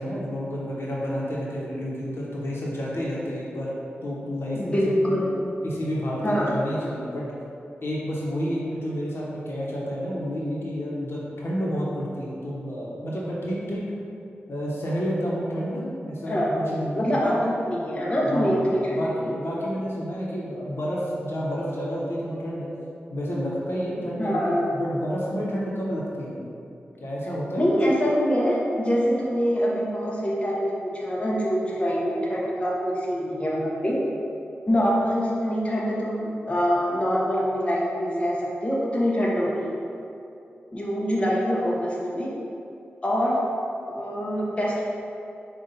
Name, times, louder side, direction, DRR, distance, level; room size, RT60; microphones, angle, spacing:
voice 1, 0.0-3.7 4.0-4.8 5.1-5.2 5.6-7.3 7.8-13.8 14.5-16.4 16.7-17.3 18.2-22.7 23.1-26.4 27.0-27.6, equal, 65° left, -5 dB, 1.0 m, -30 dB
voice 2, 4.6-5.3 6.2-6.6 16.3-19.3 24.2-24.7 27.6-34.0 34.7-39.6 40.7-42.3 43.0-43.4 43.9-44.8, equal, 30° left, -5 dB, 0.8 m, -24 dB
5.4 x 2.5 x 3.9 m, 2.7 s
cardioid pair, 50°, 4 cm